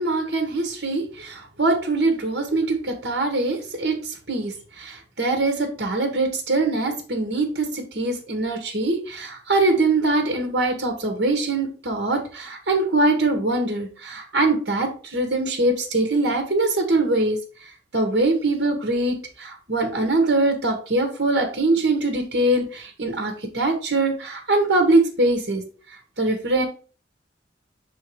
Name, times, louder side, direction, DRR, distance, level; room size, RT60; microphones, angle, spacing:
voice 1, 0.0-17.4 17.9-25.6 26.2-26.6, right 2 dB, 65° right, 4 dB, 1.4 m, -23 dB
5.7 x 3.8 x 4.6 m, 0.38 s
head